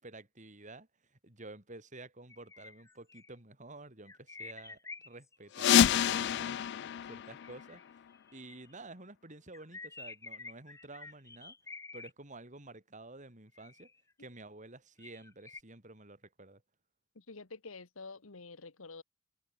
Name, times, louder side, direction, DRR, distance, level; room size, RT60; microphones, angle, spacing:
voice 1, 0.0-4.8 5.0-7.8 8.3-11.6 11.9-13.9 14.2-16.6, right 2 dB, 35° right, 4.0 m, -51 dB
sound 1, 2.3-3.3 4.1-5.5 7.4-8.8 9.5-12.1 13.5-14.1 15.0-15.6, left 4 dB, 15° left, 0.8 m, -49 dB
sound 2, 5.5-8.2, left 9 dB, 55° left, 0.3 m, -28 dB
voice 2, 17.1-19.0, left 3 dB, 85° left, 1.5 m, -48 dB
head